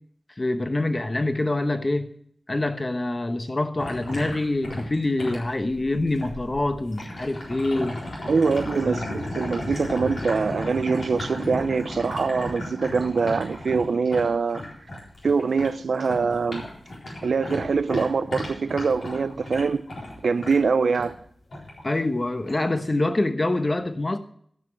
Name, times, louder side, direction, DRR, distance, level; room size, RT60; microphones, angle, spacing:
voice 1, 0.4-2.1 2.5-8.0 8.8-9.0 21.8-24.2, left 2 dB, 35° left, 1.1 m, -25 dB
sound 1, 3.8-15.7 16.0-21.1 21.5-21.8 22.4-22.6, left 1 dB, 75° left, 4.1 m, -35 dB
voice 2, 8.3-14.6 15.2-16.6 17.2-19.8 20.2-21.1, right 5 dB, 85° right, 0.5 m, -24 dB
13.0 x 6.0 x 7.7 m
cardioid pair, 55°, 0 cm